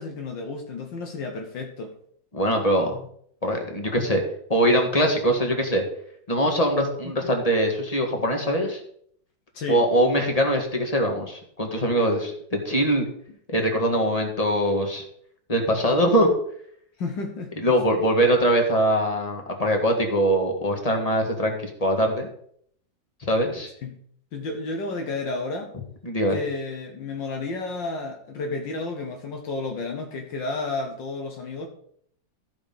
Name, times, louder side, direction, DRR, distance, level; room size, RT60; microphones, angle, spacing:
voice 1, 0.0-1.9 7.0-7.3 9.5-9.9 17.0-17.5 23.8-24.0 24.3-25.7 26.3-31.7, left 3 dB, 70° left, 3 dB, 1.8 m, -32 dB
voice 2, 2.3-3.0 3.4-4.2 4.5-5.8 6.3-8.8 9.7-13.1 13.5-15.0 15.5-16.3 17.6-22.3 23.2-23.7 26.0-26.4, equal, 20° left, 2 dB, 1.8 m, -22 dB
14.5 x 5.1 x 5.4 m, 0.64 s
omnidirectional pair, 2.1 m